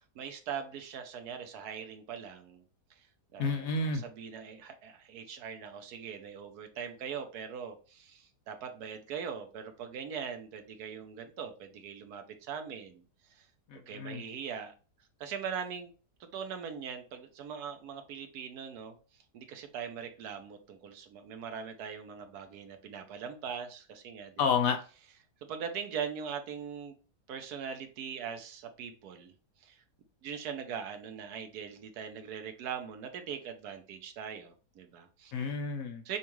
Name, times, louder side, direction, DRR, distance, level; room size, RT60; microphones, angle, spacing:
voice 1, 0.1-2.6 3.0-13.0 13.3-13.5 13.7-14.7 15.2-15.9 16.2-18.9 19.3-24.3 25.5-26.9 27.3-29.3 29.6-29.8 30.2-35.3 36.0-36.2, right 7 dB, 80° right, 7 dB, 1.2 m, -41 dB
voice 2, 3.4-4.0 13.7-14.2 24.4-24.8 35.3-36.0, left 5 dB, 65° left, 5 dB, 1.1 m, -30 dB
7.0 x 2.4 x 3.0 m, 0.36 s
omnidirectional pair, 1.7 m